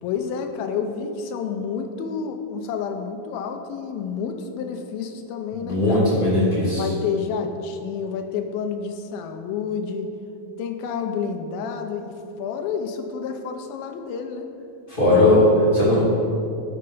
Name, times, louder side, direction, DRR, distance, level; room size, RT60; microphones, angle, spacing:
voice 1, 0.0-6.1 6.8-10.1 10.6-14.5, left 6 dB, 85° left, 5 dB, 2.5 m, -29 dB
voice 2, 5.6-6.9 14.9-15.4 15.7-16.0, left 2 dB, 15° left, -8 dB, 2.2 m, -18 dB
12.5 x 5.2 x 5.4 m, 2.6 s
omnidirectional pair, 4.2 m